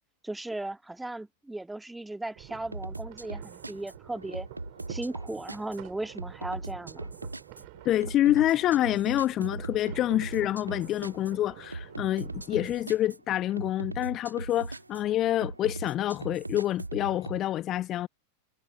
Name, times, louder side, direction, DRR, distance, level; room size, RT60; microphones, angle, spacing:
voice 1, 0.2-4.5 4.9-7.1, right 2 dB, 5° right, 2.0 m, -37 dB
sound 1, 2.3-12.8, right 40 dB or more, 45° right, 4.6 m, -49 dB
sound 2, 2.7-17.4, right 2 dB, 80° right, 1.3 m, -40 dB
voice 2, 7.8-18.1, left 13 dB, 30° left, 1.1 m, -27 dB
figure-of-eight pair, 90°, 0 cm